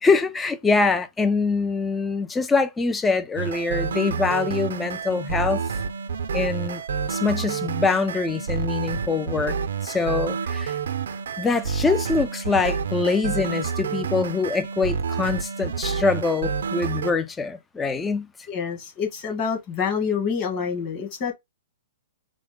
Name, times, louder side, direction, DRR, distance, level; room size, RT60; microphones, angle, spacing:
voice 1, 0.0-5.6 6.3-6.8 7.1-9.6 9.8-10.8 11.4-18.3, left 4 dB, 10° left, 0.4 m, -24 dB
sound 1, 3.4-17.1, right 6 dB, 80° right, 0.6 m, -29 dB
voice 2, 18.5-21.3, left 6 dB, 25° left, 1.5 m, -27 dB
4.9 x 2.1 x 3.6 m
hypercardioid pair, 165°, 0 cm